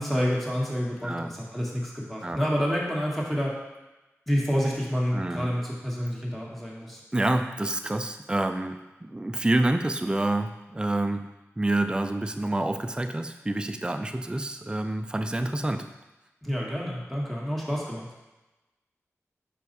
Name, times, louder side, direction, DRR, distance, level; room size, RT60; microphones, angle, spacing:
voice 1, 0.0-3.6 4.3-7.0 16.4-18.1, equal, ahead, -4 dB, 1.7 m, -28 dB
voice 2, 5.1-5.5 7.1-11.3 11.6-15.9, right 1 dB, 15° right, 7 dB, 0.4 m, -28 dB
5.4 x 4.5 x 4.1 m, 1.0 s
wide cardioid pair, 55°, 5 cm